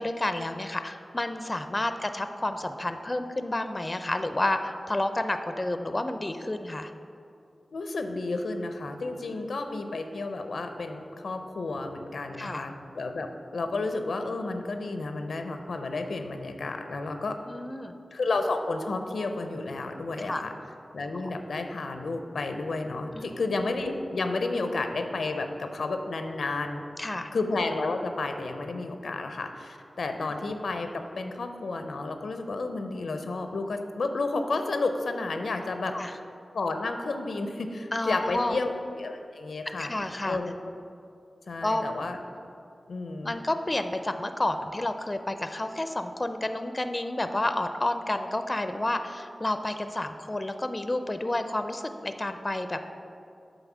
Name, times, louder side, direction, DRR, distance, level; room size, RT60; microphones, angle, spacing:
voice 1, 0.0-6.9 9.2-9.4 12.4-12.7 17.5-17.9 20.2-20.5 23.1-23.3 27.0-27.3 35.9-36.2 37.9-38.6 39.8-40.4 41.6-41.8 43.2-52.8, left 1 dB, 30° left, 8 dB, 0.4 m, -30 dB
voice 2, 7.7-13.3 13.5-17.4 18.1-20.5 20.9-26.8 27.3-36.2 36.5-39.9 40.3-40.6 41.5-42.2 42.9-43.4, left 3 dB, 85° left, 6 dB, 0.5 m, -31 dB
7.9 x 3.9 x 6.0 m, 2.5 s
cardioid pair, 45°, 0 cm